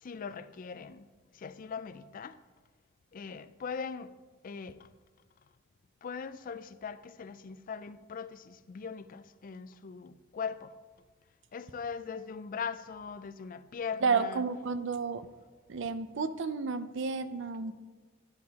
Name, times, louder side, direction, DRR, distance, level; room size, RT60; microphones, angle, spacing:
voice 1, 0.0-1.1 1.3-2.4 3.1-4.1 4.4-4.9 6.0-10.7 11.5-14.4, left 6 dB, 45° left, 0.4 m, -40 dB
voice 2, 14.0-15.3 15.7-17.7, right 5 dB, 65° right, 0.5 m, -31 dB
13.0 x 10.5 x 2.9 m
head